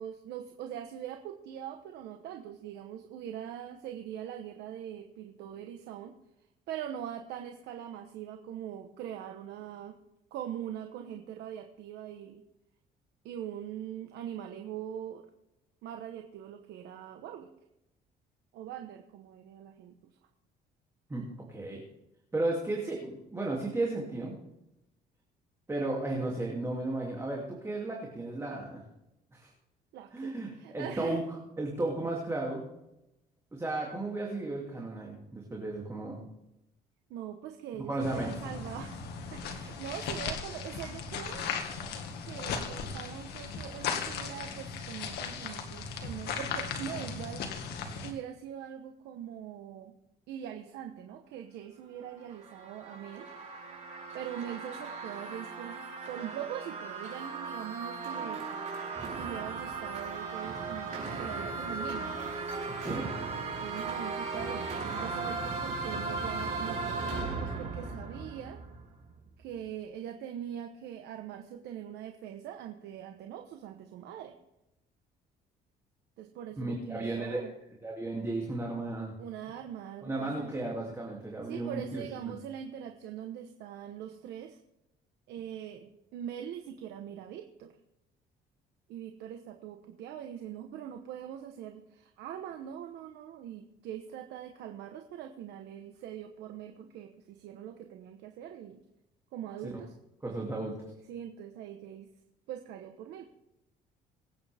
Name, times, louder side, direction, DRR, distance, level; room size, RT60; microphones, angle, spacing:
voice 1, 0.0-6.1 6.7-10.0 10.3-12.4 13.2-15.2 15.8-17.5 18.5-20.1 29.9-31.2 37.1-39.0 39.3-41.5 42.2-47.5 48.0-49.9 50.3-53.3 54.1-55.8 56.1-58.5 59.1-62.3 63.6-68.6 69.4-74.3 76.2-77.5 79.2-80.5 81.4-84.6 85.3-87.7 88.9-98.8 99.3-99.9 101.1-102.1 102.5-103.3, right 10 dB, 85° right, 5 dB, 1.2 m, -42 dB
voice 2, 21.5-21.8 22.3-24.3 25.7-28.8 29.3-29.5 30.1-31.2 31.6-32.6 33.5-36.2 37.9-38.3 62.8-63.1 76.6-77.4 77.8-79.1 80.0-82.3 100.2-100.8, right 2 dB, 15° right, -2 dB, 2.7 m, -34 dB
sound 1, 38.0-48.1, left 6 dB, 75° left, 1.9 m, -37 dB
sound 2, 52.1-69.0, right 4 dB, 45° right, 4.5 m, -37 dB
24.0 x 9.0 x 3.6 m, 0.88 s
cardioid pair, 110°, 17 cm